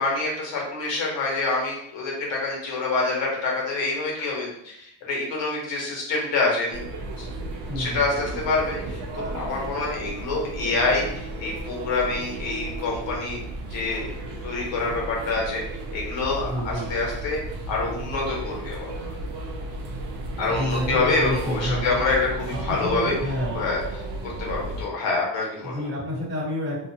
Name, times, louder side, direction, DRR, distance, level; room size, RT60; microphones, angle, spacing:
voice 1, 0.0-6.8 7.2-7.3 7.8-13.4 13.7-14.1 14.4-15.6 15.9-17.4 17.7-19.2 20.4-23.1 23.5-25.9, left 3 dB, 70° left, -2 dB, 1.1 m, -26 dB
sound 1, 6.7-24.9, right 2 dB, 55° right, 0.5 m, -33 dB
voice 2, 7.7-8.1 16.4-16.9 20.5-21.8 22.7-23.6 25.6-26.9, equal, 25° right, -10 dB, 0.8 m, -29 dB
2.6 x 2.2 x 2.7 m, 0.76 s
cardioid pair, 150°, 46 cm